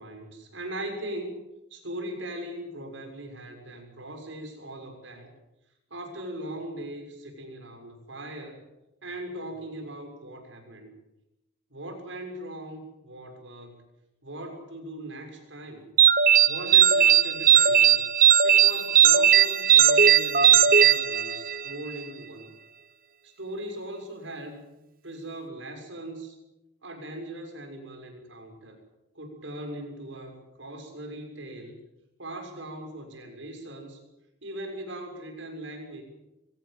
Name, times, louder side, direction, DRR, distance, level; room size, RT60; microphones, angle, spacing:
voice 1, 0.0-1.4 1.7-5.3 5.9-8.6 9.0-10.9 11.7-13.8 14.2-15.9 16.4-18.0 18.4-22.5 23.2-24.7 25.0-26.4 26.8-28.8 29.1-31.8 32.2-34.0 34.4-36.0, right 1 dB, 80° right, 3 dB, 6.7 m, -39 dB
sound 1, 16.0-21.7, right 9 dB, 45° right, 1.0 m, -18 dB
23.0 x 17.5 x 7.6 m, 0.91 s
head